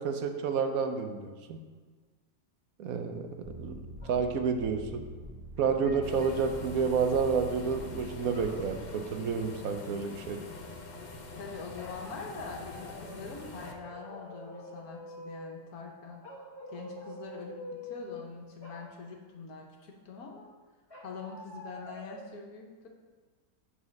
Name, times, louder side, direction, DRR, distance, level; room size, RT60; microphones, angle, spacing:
voice 1, 0.0-1.6 2.8-3.3 3.6-3.8 4.1-5.0 5.6-10.4, right 5 dB, 70° right, 6 dB, 1.1 m, -30 dB
sound 1, 3.4-9.0, right 1 dB, 20° right, 0.9 m, -45 dB
sound 2, 4.0-4.3 5.6-6.5 8.3-9.2 11.8-13.2 13.6-15.6 16.2-18.3 18.6-18.9 20.9-22.3, left 1 dB, 15° left, 1.4 m, -46 dB
sound 3, 6.0-13.7, left 3 dB, 50° left, 0.5 m, -45 dB
voice 2, 11.3-16.3 16.7-20.5 21.0-22.9, left 4 dB, 75° left, 0 dB, 1.4 m, -44 dB
7.1 x 4.3 x 6.4 m, 1.4 s
omnidirectional pair, 1.6 m